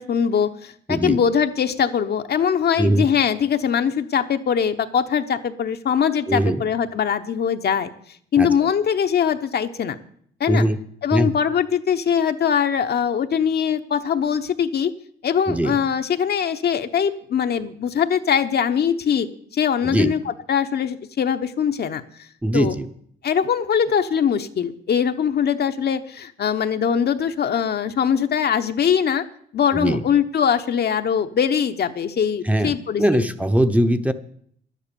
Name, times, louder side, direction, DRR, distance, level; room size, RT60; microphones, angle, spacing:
voice 1, 0.0-7.9 8.3-10.0 10.4-10.6 11.0-14.9 15.2-19.3 19.5-22.0 22.5-22.7 23.2-29.2 29.5-33.3, left 7 dB, 55° left, 7 dB, 1.0 m, -22 dB
voice 2, 0.9-1.2 2.8-3.1 6.3-6.6 8.4-8.5 10.5-10.8 11.1-11.3 15.5-15.8 19.8-20.1 22.4-22.9 29.7-30.0 32.4-34.1, right 1 dB, 5° right, 8 dB, 0.9 m, -20 dB
11.0 x 10.0 x 7.0 m, 0.63 s
cardioid pair, 90°, 20 cm